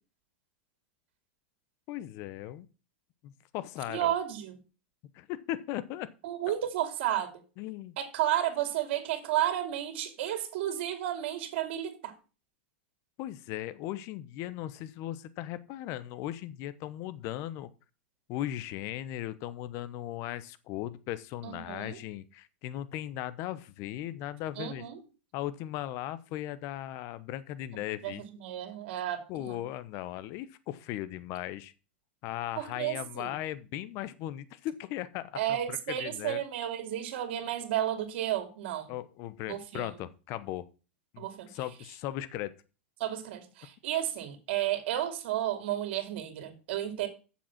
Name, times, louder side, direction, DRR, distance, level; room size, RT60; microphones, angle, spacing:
voice 1, 1.9-2.7 3.2-4.1 5.1-6.1 7.6-7.9 13.2-17.7 18.3-24.8 25.3-28.2 29.3-31.7 32.2-36.4 38.9-40.6 41.1-42.5, left 13 dB, 50° left, 0.9 m, -37 dB
voice 2, 3.9-4.6 6.2-7.3 8.0-12.1 21.4-22.0 24.6-25.0 28.0-28.1 28.4-29.6 32.6-33.3 35.3-38.9 39.5-39.9 41.2-41.5 43.0-47.1, right 12 dB, 65° right, 2.6 m, -32 dB
7.5 x 7.3 x 5.8 m
hypercardioid pair, 115°, 6 cm